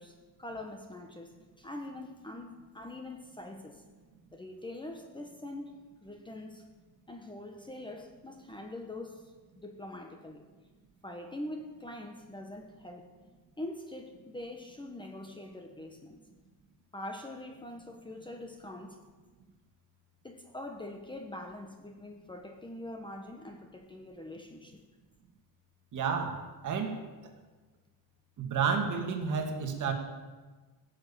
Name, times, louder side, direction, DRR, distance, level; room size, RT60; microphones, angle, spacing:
voice 1, 0.0-3.8 4.3-6.7 7.1-10.5 11.0-13.1 13.6-16.2 16.9-19.0 20.2-24.8, left 1 dB, 10° left, 3 dB, 1.1 m, -44 dB
voice 2, 25.9-27.3 28.4-29.9, right 6 dB, 45° right, 4 dB, 2.1 m, -31 dB
16.0 x 7.2 x 8.8 m, 1.3 s
cardioid pair, 145°, 43 cm